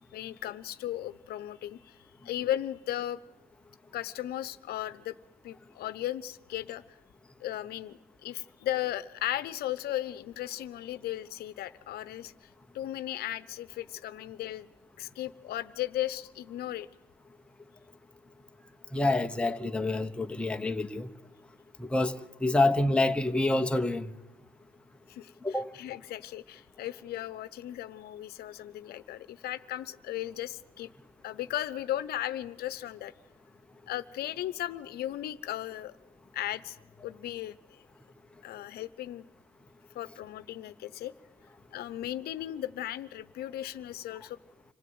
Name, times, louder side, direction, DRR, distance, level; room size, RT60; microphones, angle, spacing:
voice 1, 0.1-2.0 2.2-3.2 3.9-5.2 5.4-6.8 7.4-12.5 12.7-14.7 15.0-16.9 25.1-30.9 31.2-33.1 33.9-36.0 36.3-36.8 37.0-37.6 38.4-39.3 39.9-41.1 41.7-44.4, left 13 dB, 70° left, 0.9 m, -36 dB
voice 2, 18.9-21.1 21.8-24.1 25.4-25.7, left 2 dB, 5° left, 1.0 m, -27 dB
25.5 x 16.0 x 9.6 m
cardioid pair, 110°, 17 cm